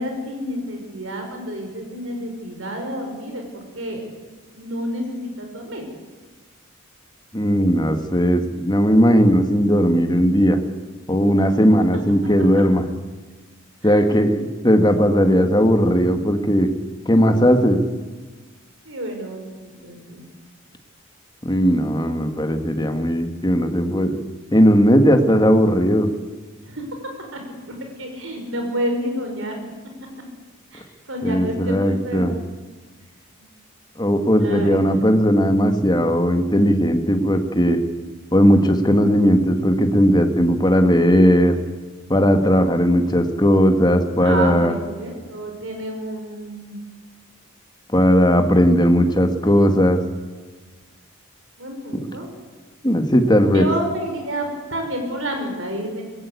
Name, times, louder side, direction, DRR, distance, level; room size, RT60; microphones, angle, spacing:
voice 1, 0.0-4.0 4.5-5.9 11.5-11.7 13.8-14.1 18.9-20.2 26.7-26.9 27.3-27.4 27.7-29.6 30.7-30.8 31.1-32.3 33.4-33.5 34.3-35.2 44.2-46.8 51.6-52.3 53.5-56.0, equal, 60° right, 3 dB, 5.3 m, -29 dB
voice 2, 7.3-10.6 11.1-12.9 13.8-16.7 17.1-17.8 21.4-24.2 24.5-26.1 31.2-32.3 34.0-37.8 38.3-41.5 42.1-44.8 47.9-50.0 52.8-53.7, equal, 20° left, 6 dB, 1.7 m, -17 dB
20.5 x 16.5 x 8.5 m, 1.3 s
head